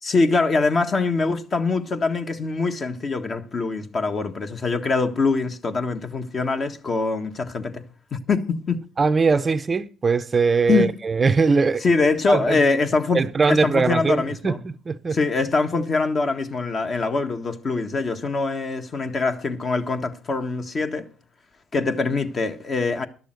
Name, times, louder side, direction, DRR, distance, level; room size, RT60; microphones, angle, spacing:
voice 1, 0.0-7.8 8.1-8.8 10.7-10.9 11.8-13.2 13.5-14.6 15.1-21.1 21.7-23.1, left 3 dB, 40° left, 1.6 m, -23 dB
voice 2, 9.0-11.8 12.3-12.6 13.1-15.2, right 4 dB, 30° right, 0.7 m, -21 dB
12.0 x 6.8 x 7.9 m
supercardioid pair, 85°, 0 cm